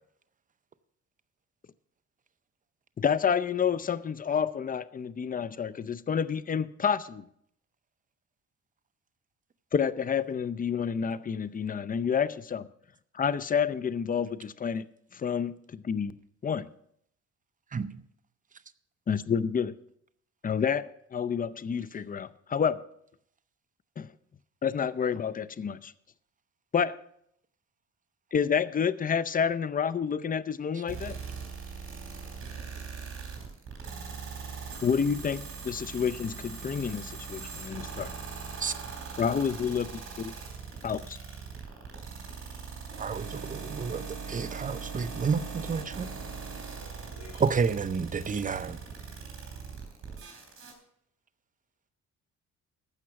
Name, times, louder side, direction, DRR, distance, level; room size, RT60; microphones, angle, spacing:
voice 1, 3.0-7.2 9.7-12.7 13.1-14.9 15.1-16.2 16.4-16.7 19.1-19.8 20.4-22.8 24.0-24.1 24.6-25.9 26.7-27.0 28.3-31.2 34.8-38.1 39.2-40.3 40.8-41.2, left 7 dB, 30° left, 16 dB, 0.6 m, -29 dB
voice 2, 17.7-18.0 38.6-38.7 43.0-46.1 47.4-48.8, right 5 dB, 25° right, 12 dB, 0.7 m, -30 dB
sound 1, 30.9-50.7, right 5 dB, 45° right, 3.7 m, -40 dB
voice 3, 32.0-32.4 46.7-47.7, left 4 dB, 80° left, -2 dB, 4.0 m, -54 dB
15.0 x 5.9 x 5.8 m, 0.70 s
cardioid pair, 90°, 30 cm